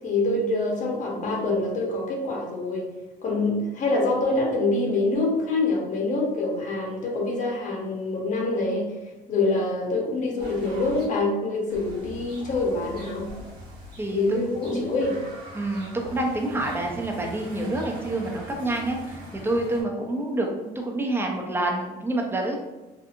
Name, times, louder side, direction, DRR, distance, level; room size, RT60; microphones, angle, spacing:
voice 1, 0.0-2.9 3.2-8.9 9.3-13.3 14.1-15.2, left 2 dB, 50° left, -1 dB, 0.8 m, -25 dB
sound 1, 10.4-11.0 11.7-19.8, right 1 dB, 65° right, 1.1 m, -42 dB
voice 2, 14.0-15.2 15.5-20.5 20.8-22.6, right 2 dB, 15° right, 0 dB, 0.5 m, -28 dB
2.6 x 2.5 x 2.5 m, 1.1 s
cardioid pair, 110°, 17 cm